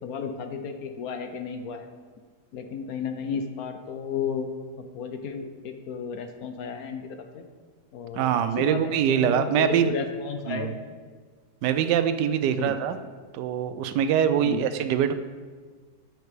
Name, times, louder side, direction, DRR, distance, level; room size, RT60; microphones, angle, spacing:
voice 1, 0.0-1.9 2.5-4.5 4.9-7.4 7.9-8.3 8.6-10.7 12.6-12.7 14.4-14.7, left 6 dB, 65° left, 6 dB, 1.1 m, -33 dB
voice 2, 8.2-9.9 10.5-10.7 11.6-13.0 13.3-15.1, right 9 dB, 85° right, 10 dB, 1.2 m, -23 dB
11.0 x 8.1 x 3.3 m, 1.5 s
omnidirectional pair, 1.8 m